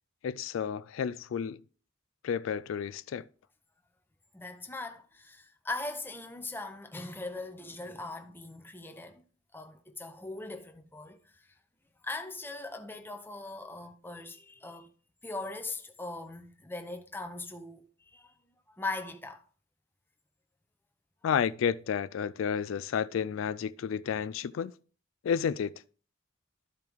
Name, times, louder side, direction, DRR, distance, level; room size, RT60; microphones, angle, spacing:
voice 1, 0.2-1.6 2.2-3.3 21.2-24.7 25.2-25.7, left 7 dB, 75° left, 0.3 m, -31 dB
voice 2, 4.3-9.2 9.5-11.5 12.0-14.9 15.2-18.3 18.7-19.4, left 2 dB, 10° left, 0.7 m, -40 dB
12.5 x 4.6 x 3.5 m
head